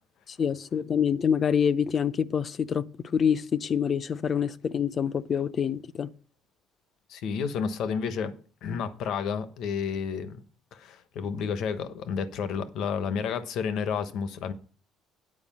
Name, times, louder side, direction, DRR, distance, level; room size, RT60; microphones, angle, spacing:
voice 1, 0.3-2.9 3.1-6.1, left 7 dB, 40° left, 0.6 m, -26 dB
voice 2, 7.1-8.4 8.6-10.4 10.7-14.5, left 6 dB, 70° left, 1.1 m, -31 dB
9.7 x 4.8 x 7.4 m
cardioid pair, 105°, 0 cm